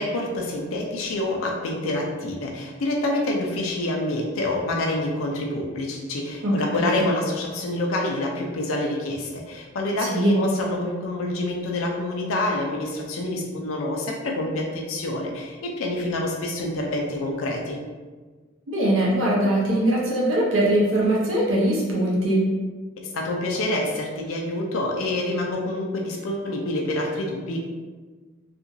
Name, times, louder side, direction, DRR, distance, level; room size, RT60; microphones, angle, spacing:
voice 1, 0.0-17.8 23.1-27.6, left 1 dB, 85° left, 0 dB, 0.4 m, -27 dB
voice 2, 6.4-7.1 10.0-10.3 18.7-22.5, right 1 dB, 70° right, -4 dB, 0.6 m, -21 dB
2.8 x 2.5 x 2.5 m, 1.4 s
head